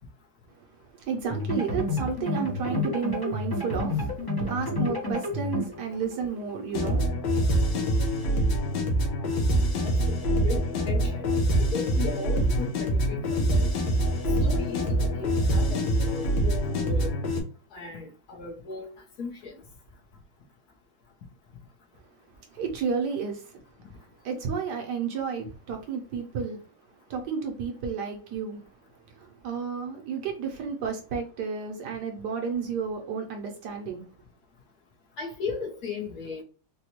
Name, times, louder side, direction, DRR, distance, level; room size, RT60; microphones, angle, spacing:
voice 1, 0.5-8.1 22.5-23.6 23.9-26.6 27.1-28.6 29.1-34.1, right 6 dB, 70° right, 1.1 m, -32 dB
sound 1, 1.2-7.0, left 2 dB, 35° left, 0.3 m, -31 dB
sound 2, 6.7-17.4, right 1 dB, 85° left, 1.6 m, -25 dB
voice 2, 9.8-11.3 11.6-13.7 14.4-17.2 17.7-19.6 35.2-36.4, left 4 dB, 60° left, 1.2 m, -37 dB
sound 3, 12.0-17.1, left 3 dB, 15° left, 0.8 m, -42 dB
4.1 x 2.2 x 2.9 m
omnidirectional pair, 2.1 m